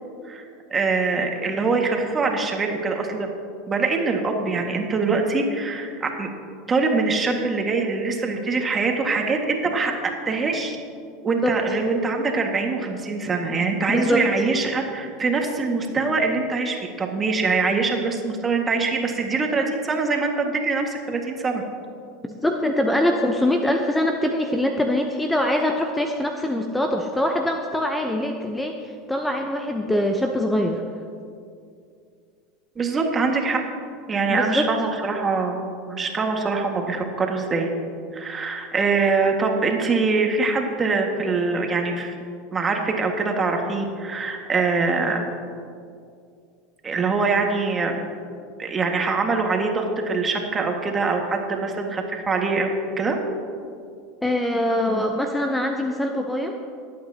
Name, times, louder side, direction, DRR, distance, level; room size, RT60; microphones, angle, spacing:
voice 1, 0.7-3.3 3.7-6.3 6.7-9.9 10.3-10.8 11.2-21.6 32.8-33.6 34.1-35.6 35.9-37.7 38.1-42.1 42.5-45.3 46.8-47.9 48.6-52.7 53.0-53.2, right 4 dB, 25° right, 2 dB, 1.8 m, -23 dB
voice 2, 13.9-14.2 22.3-30.8 34.3-34.6 54.2-56.5, left 1 dB, 5° left, 3 dB, 0.8 m, -23 dB
20.0 x 8.7 x 2.9 m, 2.3 s
hypercardioid pair, 85°, 0 cm